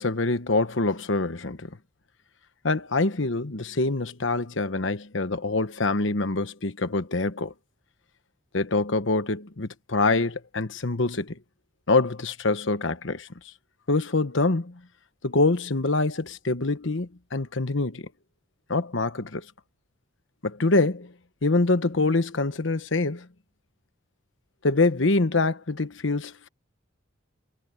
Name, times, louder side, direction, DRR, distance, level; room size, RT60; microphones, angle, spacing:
voice 1, 0.0-1.8 2.6-7.5 8.5-11.4 11.9-13.3 13.9-14.8 15.2-18.1 18.7-19.4 20.4-21.1 21.4-23.3 24.6-26.5, left 3 dB, 65° left, 1.2 m, -25 dB
head